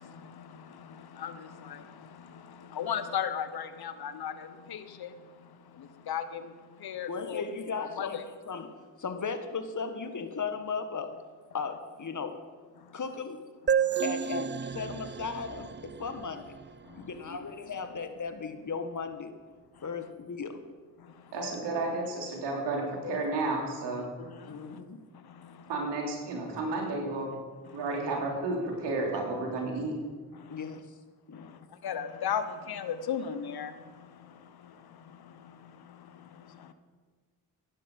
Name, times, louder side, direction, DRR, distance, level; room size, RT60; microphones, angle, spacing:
voice 1, 0.0-7.4 7.8-8.2 12.8-13.0 13.7-14.0 16.8-17.4 19.7-19.9 21.0-21.5 23.0-23.3 24.0-24.8 25.1-25.7 27.6-28.0 30.3-30.8 31.3-36.7, left 8 dB, 60° left, 11 dB, 1.3 m, -38 dB
voice 2, 7.1-8.7 9.0-11.2 11.5-12.4 12.9-13.4 14.0-16.5 16.9-19.3 19.8-20.6 24.5-25.0 30.5-30.9 31.3-31.6, left 5 dB, 45° left, 8 dB, 1.7 m, -36 dB
sound 1, 13.7-17.2, right 8 dB, 25° right, 0.5 m, -32 dB
voice 3, 21.3-24.2 25.7-27.4 27.7-29.9, right 2 dB, 80° right, 0 dB, 3.3 m, -32 dB
15.0 x 11.0 x 5.4 m, 1.5 s
hypercardioid pair, 40°, 41 cm